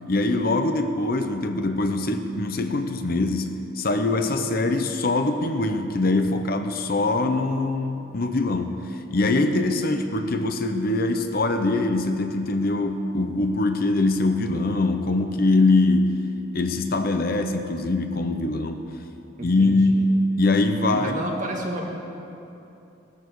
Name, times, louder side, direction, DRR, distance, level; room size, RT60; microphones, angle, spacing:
voice 1, 0.1-16.2 16.5-18.8 19.4-21.1, left 2 dB, 50° left, 7 dB, 0.8 m, -23 dB
voice 2, 19.4-20.1 20.9-21.9, right 1 dB, 40° right, -1 dB, 2.2 m, -31 dB
18.0 x 13.5 x 4.7 m, 2.8 s
head